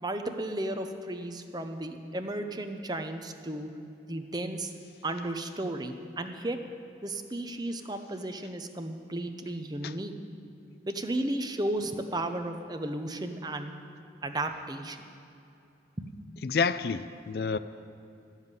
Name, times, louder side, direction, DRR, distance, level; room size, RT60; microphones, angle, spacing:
voice 1, 0.0-3.7 4.1-4.7 5.0-6.6 7.0-10.1 10.9-13.7 14.2-15.0 16.0-16.3, right 1 dB, 20° right, 0.7 m, -34 dB
voice 2, 16.4-17.6, left 5 dB, 55° left, 0.4 m, -28 dB
13.5 x 7.3 x 9.7 m
head